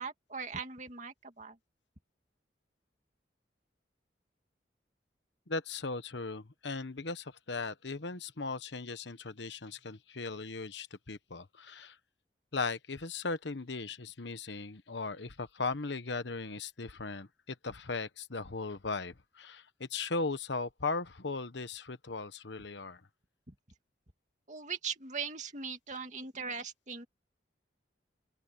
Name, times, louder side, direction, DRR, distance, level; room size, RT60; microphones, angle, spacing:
voice 1, 0.0-1.6 23.5-23.6 24.5-27.1, right 5 dB, 40° right, 2.4 m, -40 dB
voice 2, 5.5-12.0 12.5-23.0, left 3 dB, 75° left, 1.2 m, -38 dB
open air
head